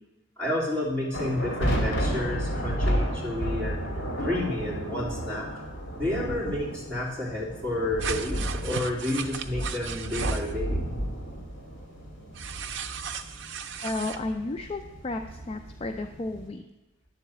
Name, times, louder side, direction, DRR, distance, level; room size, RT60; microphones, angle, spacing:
voice 1, 0.4-3.9 4.2-5.5 6.0-10.9, left 1 dB, 5° left, -10 dB, 3.0 m, -30 dB
sound 1, 1.1-16.5, equal, 60° left, 2.1 m, -32 dB
sound 2, 8.0-10.5 12.3-14.2, right 7 dB, 60° right, 0.5 m, -35 dB
voice 2, 13.8-16.6, left 2 dB, 30° left, 6 dB, 0.3 m, -33 dB
11.0 x 3.9 x 7.5 m, 1.0 s
head